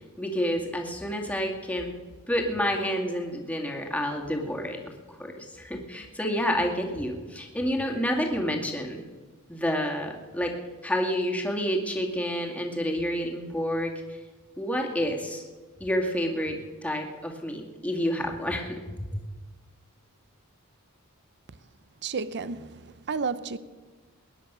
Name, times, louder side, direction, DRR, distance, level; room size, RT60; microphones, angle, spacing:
voice 1, 0.0-1.9 2.3-4.8 5.2-9.0 9.5-10.5 10.8-13.9 14.6-15.4 15.8-16.6 16.8-18.8 19.1-19.2, equal, 5° left, 2.2 m, -29 dB
voice 2, 22.0-23.6, right 5 dB, 55° right, 0.7 m, -32 dB
20.5 x 10.0 x 6.2 m
head